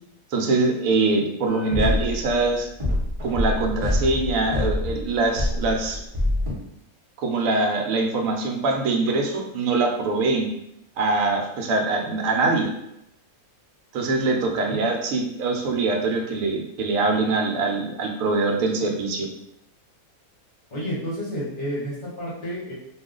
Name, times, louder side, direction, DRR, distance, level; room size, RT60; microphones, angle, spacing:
voice 1, 0.3-2.7 3.2-6.0 7.2-10.5 11.0-12.7 13.9-19.3, right 3 dB, 70° right, 2 dB, 0.9 m, -23 dB
sound 1, 1.5-2.5 2.8-6.5, left 1 dB, 25° right, 0.7 m, -26 dB
voice 2, 14.5-14.9 20.7-22.7, equal, 40° left, -7 dB, 0.9 m, -31 dB
2.4 x 2.3 x 3.6 m, 0.80 s
omnidirectional pair, 1.5 m